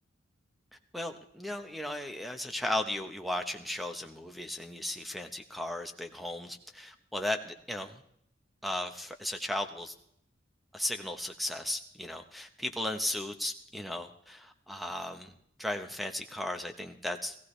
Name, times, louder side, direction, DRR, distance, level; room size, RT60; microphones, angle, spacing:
voice 1, 0.9-8.0 8.6-9.9 10.7-17.3, left 1 dB, ahead, 7 dB, 1.0 m, -36 dB
18.5 x 16.5 x 3.3 m, 0.70 s
head